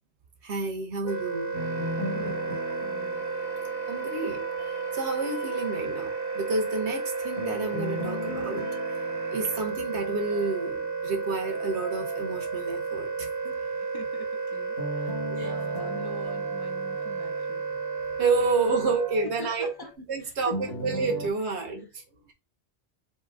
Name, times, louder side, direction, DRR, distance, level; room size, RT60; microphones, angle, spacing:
voice 1, 0.4-1.5 3.9-8.8 9.3-13.5 15.3-15.5 18.2-19.7 20.1-22.3, right 4 dB, 85° right, 1.2 m, -30 dB
Wind instrument woodwind instrument, 1.0-19.2, right 5 dB, 15° right, 0.8 m, -32 dB
sound 1, 1.5-4.6 7.4-10.6 14.8-17.9 20.5-21.3, left 1 dB, 60° left, 1.8 m, -37 dB
sound 2, 1.5-20.0, right 1 dB, 60° right, 1.1 m, -50 dB
voice 2, 1.9-2.4 2.8-3.3 13.5-17.6 19.4-19.9 20.2-20.5, left 2 dB, 25° left, 0.8 m, -44 dB
4.4 x 2.8 x 3.6 m
omnidirectional pair, 1.1 m